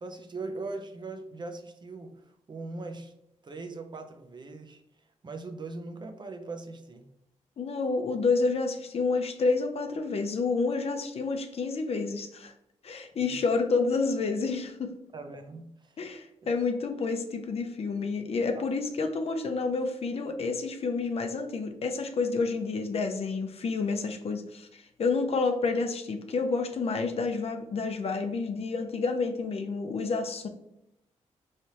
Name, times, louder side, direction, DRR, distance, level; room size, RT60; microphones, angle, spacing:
voice 1, 0.0-3.1 3.4-4.8 5.2-7.1 13.3-13.4 15.1-16.0 16.4-16.5 18.5-18.6, right 3 dB, 40° right, 6 dB, 0.6 m, -40 dB
voice 2, 7.6-12.5 12.8-14.9 16.0-30.5, left 4 dB, 55° left, 5 dB, 0.6 m, -29 dB
4.5 x 3.2 x 2.8 m, 0.83 s
cardioid pair, 85°, 12 cm